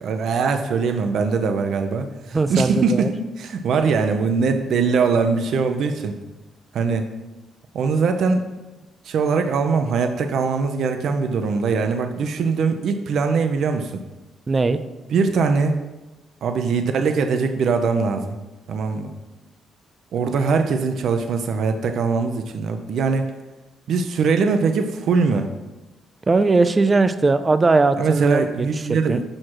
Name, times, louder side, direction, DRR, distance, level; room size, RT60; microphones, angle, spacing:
voice 1, 0.0-6.2 6.7-7.1 7.7-8.5 9.0-14.0 15.1-15.8 16.4-18.3 18.7-19.1 20.1-23.3 23.9-25.5 28.0-29.2, right 5 dB, 70° right, 6 dB, 0.6 m, -21 dB
voice 2, 2.3-3.1 14.5-14.8 26.3-28.7 29.1-29.2, right 3 dB, 25° right, 12 dB, 0.5 m, -19 dB
6.5 x 6.0 x 4.7 m, 1.0 s
cardioid pair, 90°, 0 cm